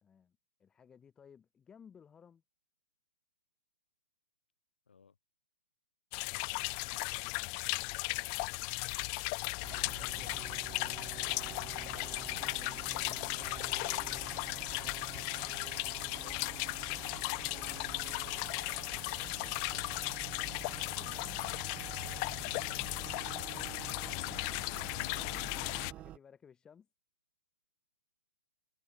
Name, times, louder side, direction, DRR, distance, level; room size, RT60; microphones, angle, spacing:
voice 1, 0.0-2.4 7.1-7.7 10.0-10.6 11.7-13.5 13.8-15.0 18.5-19.8 20.5-21.5 25.8-26.9, left 7 dB, 15° left, 1.5 m, -60 dB
voice 2, 4.9-5.2 16.9-17.5 23.7-24.0, left 6 dB, 85° left, 3.1 m, -63 dB
sound 1, 6.1-25.9, left 40 dB or more, 30° left, 0.3 m, -36 dB
sound 2, 9.6-26.2, right 14 dB, 20° right, 1.4 m, -48 dB
hypercardioid pair, 140°, 6 cm